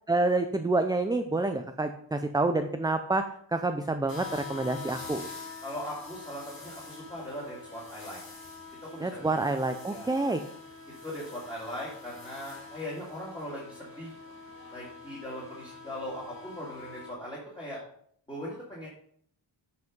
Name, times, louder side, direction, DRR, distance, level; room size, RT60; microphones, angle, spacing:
voice 1, 0.1-3.3 3.5-5.3 9.0-10.4, right 2 dB, 10° right, 7 dB, 0.3 m, -28 dB
sound 1, 4.1-17.1, left 4 dB, 45° left, 2.5 m, -45 dB
voice 2, 5.6-8.2 8.8-9.5 9.9-10.2 11.0-14.2 14.7-17.8 18.3-18.9, equal, 10° left, -6 dB, 2.5 m, -39 dB
8.0 x 5.4 x 5.3 m, 0.64 s
wide cardioid pair, 135°, 49 cm